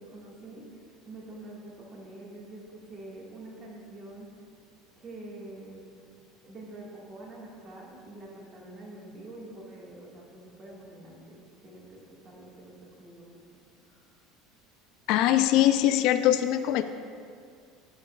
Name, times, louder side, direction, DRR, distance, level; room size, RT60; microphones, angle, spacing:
voice 1, 0.0-4.4 5.0-5.9 6.4-13.4 13.8-14.0, right 2 dB, 35° right, -3 dB, 1.7 m, -46 dB
voice 2, 15.1-16.8, left 12 dB, 65° left, 10 dB, 0.3 m, -22 dB
11.0 x 5.2 x 2.4 m, 2.2 s
supercardioid pair, 120°, 0 cm